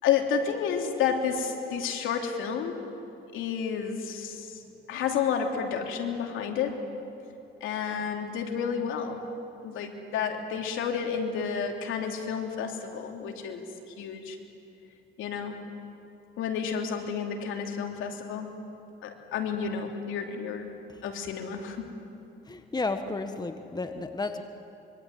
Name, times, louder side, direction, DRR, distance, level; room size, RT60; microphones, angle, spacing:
voice 1, 0.0-2.8 3.3-4.6 4.9-6.8 7.6-9.2 9.6-13.6 14.0-14.4 15.2-15.6 16.4-18.5 19.0-20.7 21.0-21.9, left 7 dB, 90° left, 3 dB, 3.1 m, -30 dB
voice 2, 22.5-24.4, left 3 dB, 20° left, 8 dB, 1.5 m, -32 dB
25.0 x 24.0 x 9.5 m, 2.8 s
cardioid pair, 90°, 20 cm